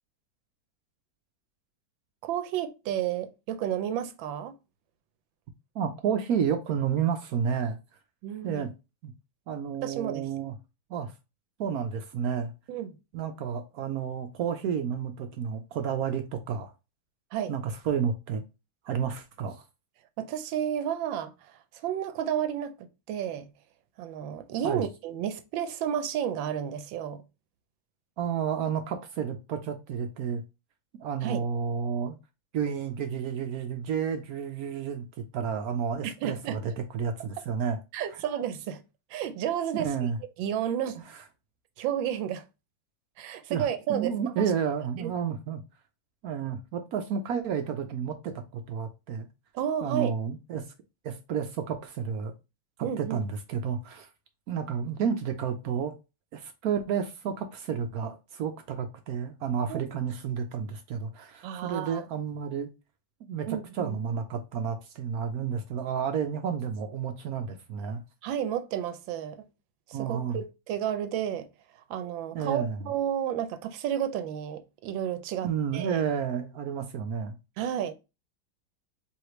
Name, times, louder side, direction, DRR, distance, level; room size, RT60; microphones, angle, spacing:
voice 1, 2.2-4.5 8.2-8.7 9.8-10.3 12.7-12.9 17.3-17.5 20.2-23.5 24.0-27.2 31.2-31.4 36.0-36.6 37.9-38.8 39.1-39.9 40.4-41.0 41.8-42.4 43.2-44.4 45.0-45.1 49.5-50.1 52.8-53.2 59.7-59.8 61.4-62.0 63.5-64.0 68.2-69.5 69.9-71.5 71.9-76.0 77.6-77.9, right 9 dB, 90° right, 1.3 m, -32 dB
voice 2, 5.7-7.8 8.4-8.7 9.0-9.1 9.5-10.5 10.9-11.1 11.6-12.5 13.1-16.7 17.5-18.4 18.8-19.6 24.6-24.8 28.2-30.4 31.0-32.2 32.5-35.0 35.3-37.8 39.7-40.2 43.5-45.6 46.2-49.3 49.8-50.6 51.0-52.3 52.8-54.1 54.5-55.9 56.3-62.7 63.3-68.0 69.9-70.4 72.3-72.8 75.4-77.4, right 7 dB, 70° right, 0.9 m, -31 dB
4.8 x 3.1 x 3.0 m
omnidirectional pair, 2.1 m